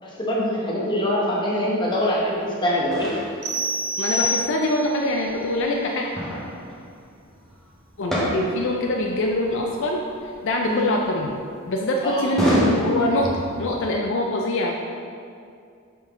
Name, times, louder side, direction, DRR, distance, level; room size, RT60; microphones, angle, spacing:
voice 1, 0.0-3.1 10.6-10.9 12.0-12.3, equal, 20° left, -5 dB, 1.0 m, -24 dB
sound 1, 1.9-2.1 2.5-4.2 5.0-5.8 6.1-12.1 12.4-14.0, equal, ahead, 0.9 m, -29 dB
sound 2, 3.4-4.9, equal, 90° right, 1.1 m, -26 dB
voice 2, 4.0-6.1 8.0-10.0 10.4-11.3 11.7-13.3 13.6-14.9, left 1 dB, 60° left, 0 dB, 0.4 m, -24 dB
5.5 x 5.3 x 3.7 m, 2.3 s
head